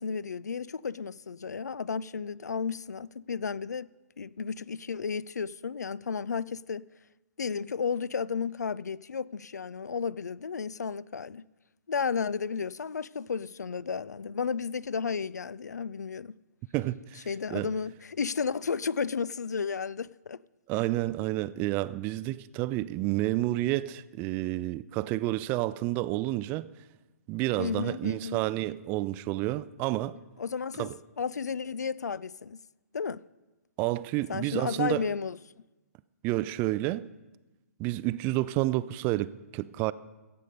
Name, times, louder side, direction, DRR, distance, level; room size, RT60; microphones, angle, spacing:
voice 1, 0.0-3.9 4.2-6.8 7.4-11.4 11.9-16.3 17.3-20.4 27.6-28.4 30.4-30.9 31.2-32.6 32.9-33.2 34.3-35.4, left 6 dB, 80° left, 0.3 m, -33 dB
voice 2, 16.7-17.7 20.7-26.7 27.3-30.2 30.8-30.9 33.8-35.0 36.2-37.1 37.8-39.9, right 17 dB, 20° right, 0.3 m, -30 dB
15.0 x 8.6 x 5.3 m
figure-of-eight pair, 130°, 9 cm